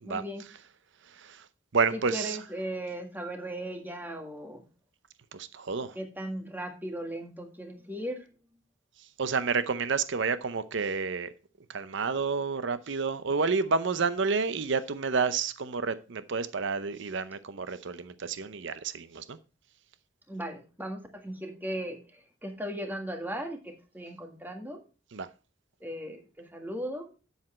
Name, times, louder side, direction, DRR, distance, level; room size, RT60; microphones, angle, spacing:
voice 1, 0.0-0.4 1.9-4.6 6.0-8.3 20.3-24.8 25.8-27.1, right 1 dB, 10° right, 1.8 m, -37 dB
voice 2, 1.1-1.5 1.7-2.4 5.3-6.0 9.2-11.3 11.7-19.4 25.1-25.3, right 5 dB, 65° right, 0.7 m, -30 dB
8.3 x 7.7 x 4.3 m
head